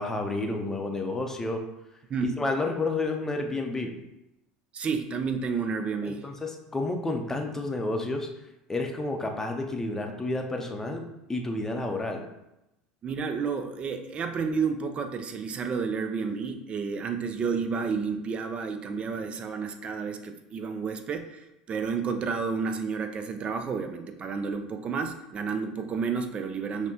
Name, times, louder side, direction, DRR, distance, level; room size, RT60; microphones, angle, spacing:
voice 1, 0.0-1.6 2.4-3.9 6.1-8.3 8.7-11.0 11.3-12.2, left 2 dB, 15° left, 3 dB, 0.6 m, -30 dB
voice 2, 4.7-6.2 13.0-26.9, right 5 dB, 35° right, 7 dB, 0.5 m, -31 dB
5.7 x 2.2 x 2.8 m, 0.89 s
hypercardioid pair, 80°, 3 cm